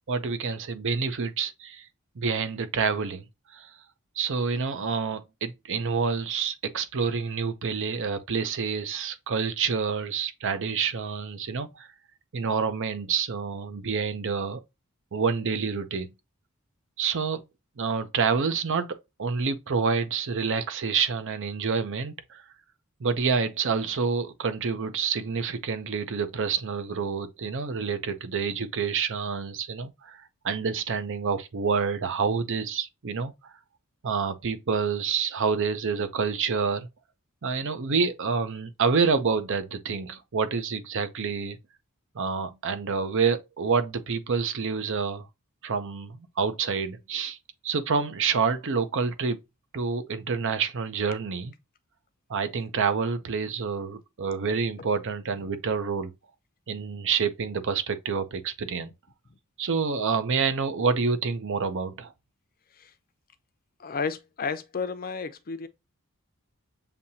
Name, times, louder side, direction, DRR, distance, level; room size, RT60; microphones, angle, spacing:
voice 1, 0.1-1.9 2.2-3.2 3.5-3.7 4.2-11.9 12.3-14.6 15.1-16.1 17.0-17.4 17.8-22.4 23.0-30.2 30.4-33.3 34.0-36.9 37.4-41.6 42.1-45.3 45.6-47.4 47.6-49.4 49.7-51.5 52.3-56.1 56.7-58.9 59.6-62.1, right 5 dB, 60° right, 0.6 m, -28 dB
voice 2, 63.8-65.7, left 5 dB, 40° left, 0.5 m, -32 dB
6.9 x 2.8 x 2.8 m
head